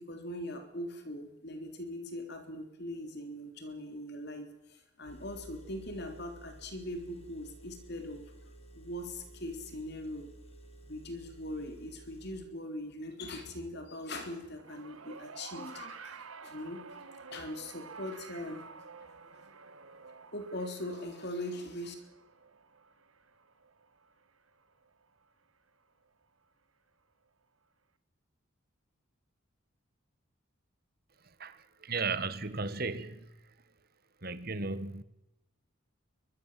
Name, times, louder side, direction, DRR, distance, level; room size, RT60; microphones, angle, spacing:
voice 1, 0.0-8.2 8.7-10.3 10.8-16.8 17.3-18.7 20.3-21.9, left 1 dB, 50° left, 3.7 m, -41 dB
Engine, 5.1-12.5, right 1 dB, 30° left, 4.0 m, -53 dB
sound 1, 14.6-25.0 26.1-26.2, right 5 dB, 80° right, 1.7 m, -50 dB
voice 2, 31.4-33.3 34.2-35.0, right 4 dB, 45° right, 1.6 m, -35 dB
24.5 x 21.0 x 7.7 m
head